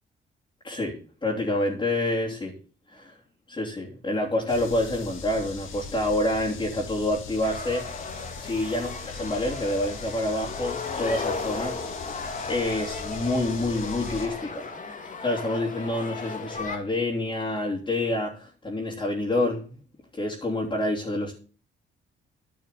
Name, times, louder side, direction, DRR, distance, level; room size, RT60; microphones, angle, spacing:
voice 1, 0.6-0.9 1.2-2.5 2.9-3.1 3.5-8.1 8.4-11.7 12.5-14.7 15.2-19.8 20.1-21.3, left 1 dB, 25° left, -4 dB, 3.2 m, -27 dB
sound 1, 4.5-14.3, left 5 dB, 85° left, 2.5 m, -40 dB
sound 2, 7.4-16.8, left 4 dB, 40° left, 2.1 m, -35 dB
10.5 x 6.2 x 7.0 m, 0.39 s
cardioid pair, 90°, 20 cm